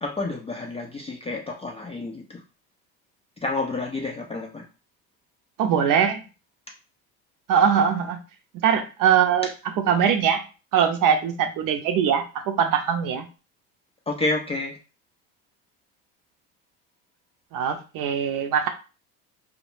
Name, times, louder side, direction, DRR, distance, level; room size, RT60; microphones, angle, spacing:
voice 1, 0.0-2.4 3.4-4.7 9.4-9.5 14.1-14.8, left 2 dB, 15° left, 0 dB, 0.3 m, -29 dB
voice 2, 5.6-6.2 7.5-8.2 8.6-9.5 9.8-10.4 10.7-13.2 17.5-18.7, right 8 dB, 55° right, 7 dB, 0.6 m, -21 dB
2.1 x 2.1 x 3.1 m, 0.33 s
supercardioid pair, 85°, 40 cm